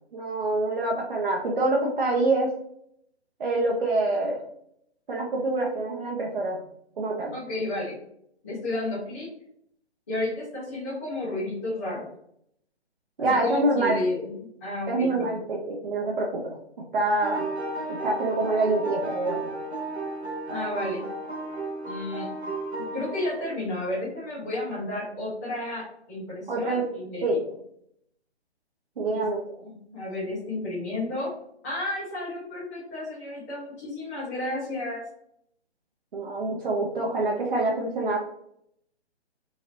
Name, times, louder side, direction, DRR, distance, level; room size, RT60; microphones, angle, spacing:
voice 1, 0.1-2.5 3.4-4.4 5.1-6.6 7.0-7.3 13.2-14.0 14.9-17.4 17.9-19.5 26.5-26.8 27.2-27.4 29.0-29.4 36.1-38.2, right 2 dB, 50° right, -2 dB, 0.6 m, -26 dB
voice 2, 7.3-7.9 8.4-9.3 10.1-12.0 13.2-14.3 14.6-15.3 20.5-21.0 21.8-22.3 22.9-27.4 29.0-29.2 29.6-31.3 31.6-35.0, left 2 dB, 15° left, -9 dB, 0.5 m, -32 dB
sound 1, 17.2-23.4, right 2 dB, 70° right, 1.1 m, -33 dB
2.8 x 2.7 x 2.9 m, 0.73 s
figure-of-eight pair, 140°, 34 cm